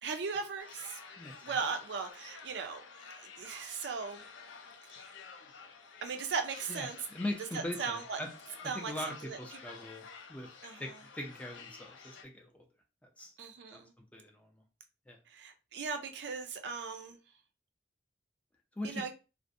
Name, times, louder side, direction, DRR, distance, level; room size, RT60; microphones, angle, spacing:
voice 1, 0.0-1.0 1.4-2.8 3.2-4.3 4.9-5.1 6.0-7.0 7.5-8.2 8.6-8.9 9.2-9.4 10.6-11.0 13.4-13.9 15.3-17.2 18.8-19.1, right 5 dB, 65° right, 6 dB, 0.4 m, -38 dB
sound 1, 0.6-12.2, left 5 dB, 85° left, 0.4 m, -51 dB
voice 2, 1.2-1.6 6.7-8.3 8.7-10.5 10.8-10.9 11.1-12.6 13.0-13.3 13.7-13.8 14.1-14.5 15.1-15.2 18.8-19.1, left 1 dB, 10° left, 1 dB, 0.4 m, -41 dB
2.5 x 2.0 x 2.5 m, 0.30 s
head